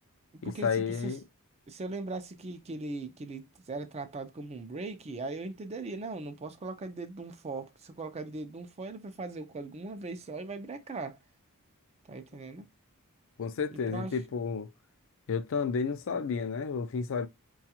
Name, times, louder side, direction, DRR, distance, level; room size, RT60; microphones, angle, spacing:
voice 1, 0.4-1.2 13.4-14.7 15.3-17.3, left 5 dB, 60° left, 0.4 m, -31 dB
voice 2, 1.7-11.2 12.1-12.7 13.7-14.1, right 3 dB, 30° right, 0.4 m, -39 dB
4.7 x 2.3 x 2.8 m
head